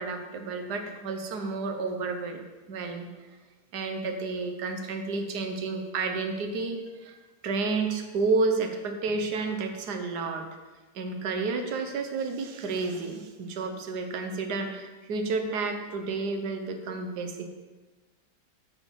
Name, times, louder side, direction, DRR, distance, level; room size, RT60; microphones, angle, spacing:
voice 1, 0.0-2.4 2.7-3.1 3.7-10.4 10.9-17.5, right 3 dB, 60° right, 5 dB, 1.5 m, -31 dB
9.4 x 4.8 x 7.1 m, 1.2 s
omnidirectional pair, 2.1 m